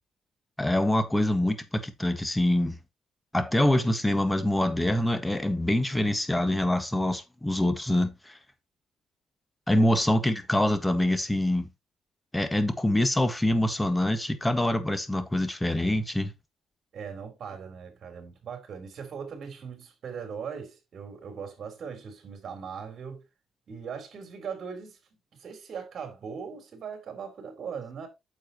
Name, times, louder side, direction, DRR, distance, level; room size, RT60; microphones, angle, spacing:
voice 1, 0.6-2.8 3.3-8.4 9.7-11.7 12.3-16.3, left 1 dB, 10° left, 1.5 m, -25 dB
voice 2, 16.9-23.2 23.7-25.0 25.4-28.1, right 6 dB, 55° right, 3.8 m, -39 dB
9.2 x 7.4 x 2.9 m
cardioid pair, 90°, 0 cm